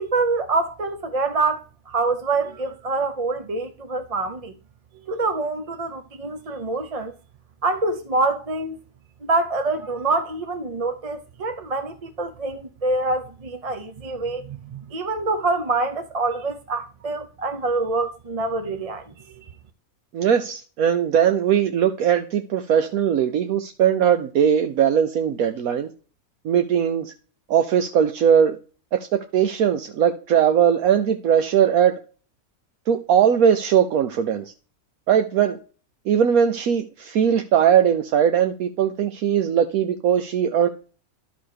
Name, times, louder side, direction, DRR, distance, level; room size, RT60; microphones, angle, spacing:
voice 1, 0.0-4.5 5.1-7.1 7.6-8.8 9.2-19.1, right 3 dB, 35° right, 0.6 m, -25 dB
voice 2, 20.1-25.9 26.4-27.1 27.5-28.6 28.9-31.9 32.9-34.5 35.1-35.6 36.1-40.7, right 8 dB, 75° right, 1.2 m, -20 dB
11.5 x 3.9 x 6.6 m
omnidirectional pair, 1.6 m